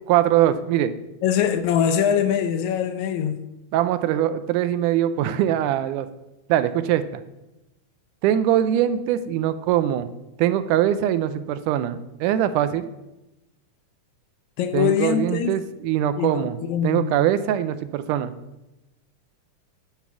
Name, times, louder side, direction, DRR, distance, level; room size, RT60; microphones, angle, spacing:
voice 1, 0.1-0.9 3.7-6.1 6.5-7.2 8.2-10.1 10.4-12.9 14.7-16.6 16.8-18.3, right 11 dB, 85° right, 2.1 m, -22 dB
voice 2, 1.2-3.4 14.6-15.6 16.2-17.1, left 9 dB, 75° left, 1.9 m, -23 dB
10.0 x 4.3 x 7.0 m
omnidirectional pair, 3.6 m